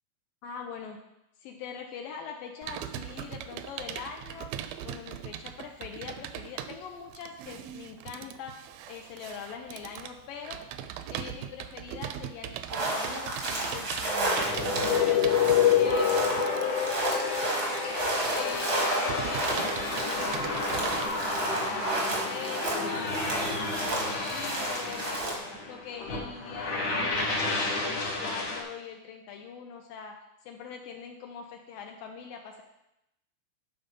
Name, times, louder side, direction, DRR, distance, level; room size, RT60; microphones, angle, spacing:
voice 1, 0.4-1.0 1.4-4.5 4.9-8.6 8.9-10.6 11.1-14.5 14.9-17.8 18.3-23.2 23.6-25.3 25.7-32.6, left 6 dB, 80° left, 3 dB, 2.2 m, -42 dB
Computer keyboard, 2.6-21.1, right 10 dB, 80° right, 2.3 m, -40 dB
sound 1, 12.7-25.4, right 2 dB, 65° right, 0.9 m, -32 dB
sound 2, 14.4-28.6, left 5 dB, 60° left, 1.1 m, -29 dB
12.0 x 4.2 x 5.3 m, 0.87 s
omnidirectional pair, 4.3 m